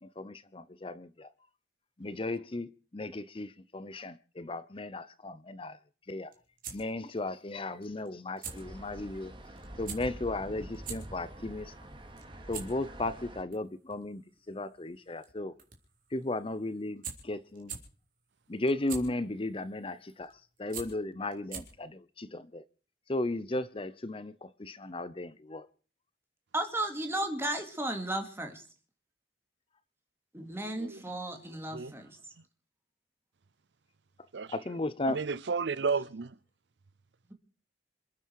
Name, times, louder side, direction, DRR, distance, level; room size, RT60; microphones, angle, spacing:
voice 1, 0.0-1.3 2.0-5.8 6.1-6.3 6.7-9.3 9.8-11.7 12.5-15.6 16.1-17.7 18.5-20.3 20.6-22.6 23.1-25.7 34.5-35.2, left 2 dB, 30° left, 0.7 m, -35 dB
sound 1, 6.1-21.9, right 6 dB, 50° right, 4.0 m, -47 dB
sound 2, 8.4-13.4, right 1 dB, 30° right, 2.4 m, -46 dB
voice 2, 26.5-28.6 30.3-32.1, right 1 dB, 15° right, 2.5 m, -34 dB
voice 3, 35.1-36.3, right 5 dB, 75° right, 0.6 m, -32 dB
27.5 x 9.3 x 4.8 m
head